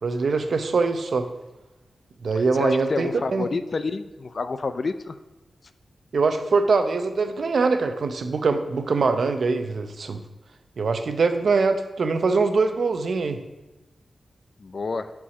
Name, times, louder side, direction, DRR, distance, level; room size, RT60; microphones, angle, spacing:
voice 1, 0.0-1.3 2.2-3.5 6.1-10.2 10.8-13.4, right 4 dB, 65° right, 8 dB, 0.6 m, -23 dB
voice 2, 2.4-5.2 14.6-15.1, left 4 dB, 45° left, 11 dB, 0.4 m, -29 dB
7.0 x 4.7 x 6.0 m, 1.0 s
wide cardioid pair, 140°, 0 cm